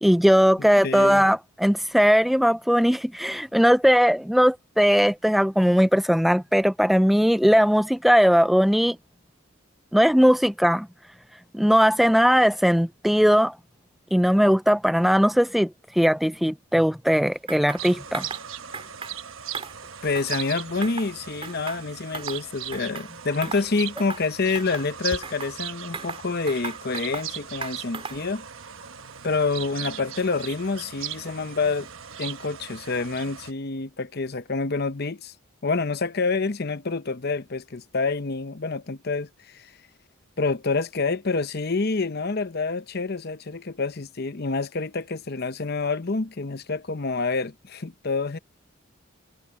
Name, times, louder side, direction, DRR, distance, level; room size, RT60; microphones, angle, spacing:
voice 1, 0.0-9.0 9.9-10.9 11.5-13.6 14.1-18.3, equal, ahead, 0.3 m, -19 dB
voice 2, 0.6-1.3 20.0-28.5 29.2-31.9 32.2-35.3 35.6-39.3 39.5-39.7 40.4-48.4, left 4 dB, 50° left, 0.8 m, -27 dB
sound 1, 17.5-17.8 18.1-18.4 18.7-19.1 19.5-20.5 20.8-21.1 21.4-22.4 22.7-23.1 23.4-23.7 24.0-24.3 24.5-25.5 25.9-27.3 27.6-28.3, right 4 dB, 25° right, 3.4 m, -37 dB
sound 2, 17.8-33.5, right 9 dB, 75° right, 1.1 m, -38 dB
head